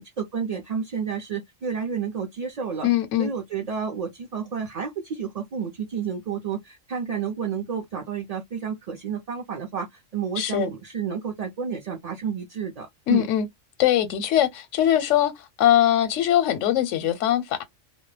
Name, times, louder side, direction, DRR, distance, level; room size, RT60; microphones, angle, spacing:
voice 1, 0.0-2.9 3.2-13.3, right 6 dB, 50° right, 0.5 m, -30 dB
voice 2, 2.8-3.3 10.4-10.7 13.1-13.5 13.8-17.6, left 11 dB, 85° left, 0.9 m, -21 dB
2.2 x 2.0 x 3.1 m
omnidirectional pair, 1.2 m